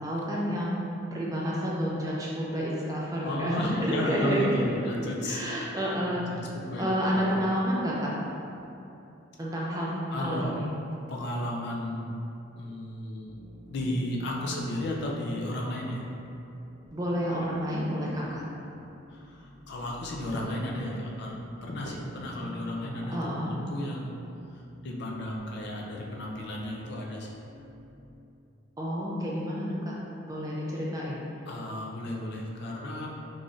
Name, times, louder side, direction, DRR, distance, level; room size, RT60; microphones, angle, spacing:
voice 1, 0.0-6.4 6.8-8.1 9.4-9.9 10.2-10.7 16.9-18.4 23.1-23.5 28.8-29.9 30.3-31.2, equal, 15° right, -5 dB, 0.4 m, -30 dB
voice 2, 3.2-5.4 6.1-6.3 6.5-7.2 7.8-7.9 10.1-10.6 11.1-12.1 12.6-13.4 13.7-16.0 19.1-24.2 24.5-27.4 31.5-33.1, left 1 dB, 55° left, -2 dB, 0.4 m, -34 dB
sound 1, 13.2-28.2, left 1 dB, 40° right, 0.8 m, -48 dB
3.8 x 3.1 x 2.5 m, 2.8 s
head